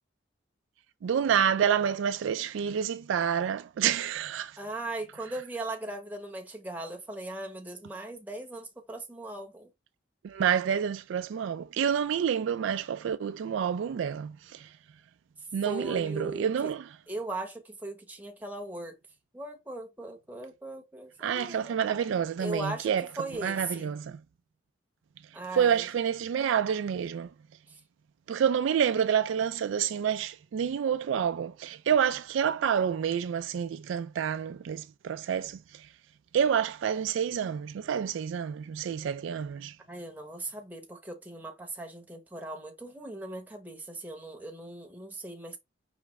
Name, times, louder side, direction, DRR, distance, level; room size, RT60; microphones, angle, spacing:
voice 1, 1.0-4.6 10.2-14.7 15.5-16.9 21.2-23.1 23.4-24.2 25.5-27.3 28.3-35.6 36.3-39.7, right 8 dB, 85° right, 0.3 m, -28 dB
voice 2, 4.6-9.7 15.6-16.7 17.1-18.9 19.3-21.8 22.4-23.9 25.3-25.9 27.7-27.8 39.9-45.6, right 2 dB, 10° right, 0.9 m, -39 dB
5.0 x 3.4 x 3.1 m
head